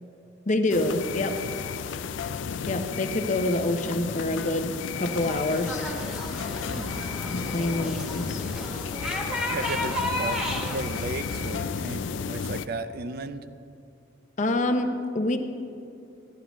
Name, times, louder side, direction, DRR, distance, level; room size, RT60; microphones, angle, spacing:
voice 1, 0.5-1.4 2.7-5.9 7.3-8.4 14.4-15.4, left 2 dB, 40° left, 7 dB, 0.7 m, -26 dB
sound 1, 0.7-12.7, left 6 dB, 85° left, 0.4 m, -33 dB
sound 2, 5.0-11.5, left 1 dB, 5° right, 1.4 m, -33 dB
voice 2, 9.5-13.4, right 2 dB, 55° right, 11 dB, 0.5 m, -35 dB
15.0 x 11.0 x 3.1 m, 2.6 s
head